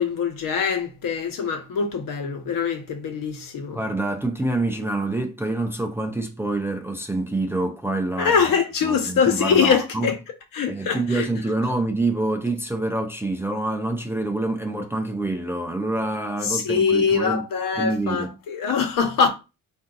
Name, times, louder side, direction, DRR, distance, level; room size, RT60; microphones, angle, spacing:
voice 1, 0.0-3.8 8.2-10.1 10.5-11.3 16.4-19.3, left 6 dB, 70° left, 1.2 m, -23 dB
voice 2, 3.7-8.5 8.8-10.1 10.7-17.4 17.8-18.4, right 2 dB, 5° right, 0.5 m, -26 dB
4.8 x 2.6 x 3.9 m
cardioid pair, 145°, 35 cm